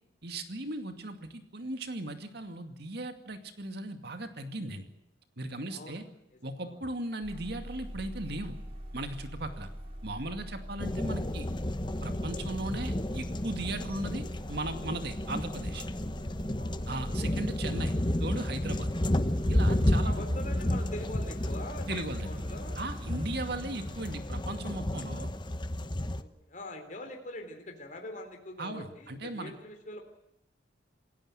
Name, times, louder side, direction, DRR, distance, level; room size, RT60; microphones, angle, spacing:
voice 1, 0.2-4.9 5.4-6.0 6.4-8.6 8.9-9.7 10.0-11.5 12.0-15.9 16.9-17.9 18.2-18.9 19.5-20.2 21.9-22.3 22.8-25.3 28.6-29.5, right 2 dB, 60° right, 7 dB, 2.3 m, -37 dB
voice 2, 5.7-6.0 6.6-6.8 9.5-9.6 10.5-10.6 16.5-16.8 19.8-22.8 26.2-30.0, left 1 dB, 45° left, 3 dB, 3.6 m, -43 dB
sound 1, 7.2-24.1, equal, 30° right, 5.5 m, -45 dB
sound 2, 10.8-26.2, left 1 dB, 25° left, 1.0 m, -32 dB
28.0 x 16.0 x 7.8 m, 0.86 s
head